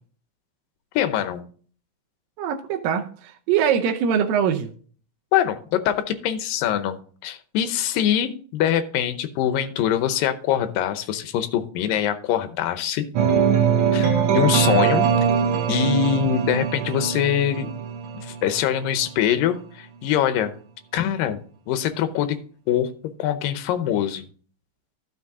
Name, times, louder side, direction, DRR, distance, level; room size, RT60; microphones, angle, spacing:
voice 1, 1.0-1.4 5.3-13.1 13.9-15.1 15.7-17.7 18.1-20.5 20.9-21.4 21.7-22.4 22.7-22.9 23.2-24.3, left 10 dB, 85° left, 2.5 m, -23 dB
voice 2, 2.4-4.7, right 8 dB, 85° right, 2.4 m, -23 dB
sound 1, 13.1-19.0, right 7 dB, 70° right, 1.3 m, -22 dB
12.0 x 6.2 x 3.6 m
omnidirectional pair, 3.9 m